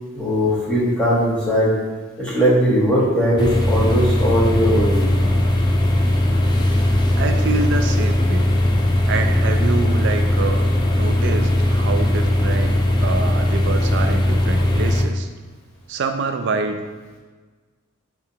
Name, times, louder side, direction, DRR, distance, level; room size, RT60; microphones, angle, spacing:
voice 1, 0.1-1.7 2.2-5.0, equal, 5° left, -7 dB, 1.1 m, -19 dB
sound 1, 3.4-15.0, left 1 dB, 20° left, 0.3 m, -18 dB
voice 2, 6.7-8.5 9.1-15.3 15.9-16.8, right 4 dB, 55° right, 7 dB, 0.3 m, -26 dB
6.4 x 2.3 x 2.8 m, 1.4 s
head